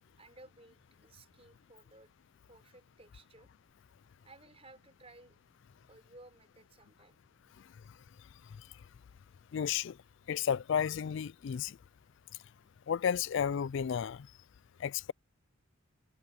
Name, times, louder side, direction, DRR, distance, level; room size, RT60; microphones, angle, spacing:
voice 1, 0.2-2.1 2.5-3.5 4.2-5.4 5.9-7.2, right 2 dB, 30° right, 5.3 m, -58 dB
voice 2, 9.5-10.0 10.3-11.8 12.9-14.3 14.8-15.1, left 8 dB, 55° left, 0.3 m, -32 dB
head